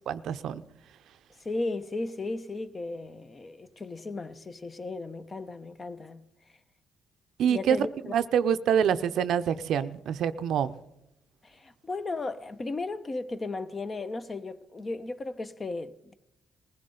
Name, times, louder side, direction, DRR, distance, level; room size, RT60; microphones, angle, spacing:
voice 1, 0.1-0.6 7.4-7.8 8.1-10.8, right 8 dB, 75° right, 0.6 m, -26 dB
voice 2, 1.4-6.3 7.5-8.1 11.4-16.1, left 3 dB, 30° left, 0.8 m, -35 dB
20.5 x 15.5 x 3.8 m
cardioid pair, 90°, 0 cm